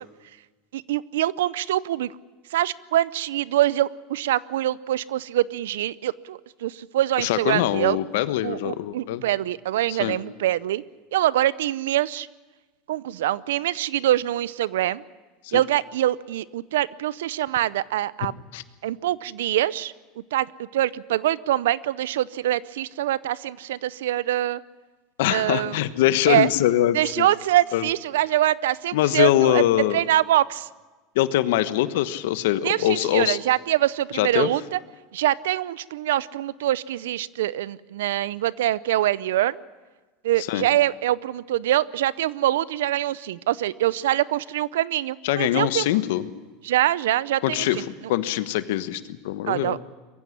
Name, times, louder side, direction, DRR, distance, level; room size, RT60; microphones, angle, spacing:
voice 1, 0.7-2.1 2.5-8.0 8.4-10.8 11.1-12.3 12.9-15.0 15.5-18.3 18.8-19.9 20.3-24.6 25.3-25.8 26.3-26.5 26.9-29.6 29.9-30.7 32.6-34.8 35.1-39.6 40.2-45.9 46.6-47.8 49.5-49.8, right 13 dB, 85° right, 20 dB, 0.6 m, -24 dB
voice 2, 7.2-9.2 9.9-10.2 15.5-15.6 18.5-18.6 25.2-27.3 27.7-27.9 28.9-30.0 31.1-33.4 34.1-34.5 40.4-40.7 45.2-46.2 47.4-49.8, left 13 dB, 80° left, 12 dB, 1.2 m, -23 dB
22.5 x 15.5 x 9.9 m, 1.2 s
supercardioid pair, 105°, 0 cm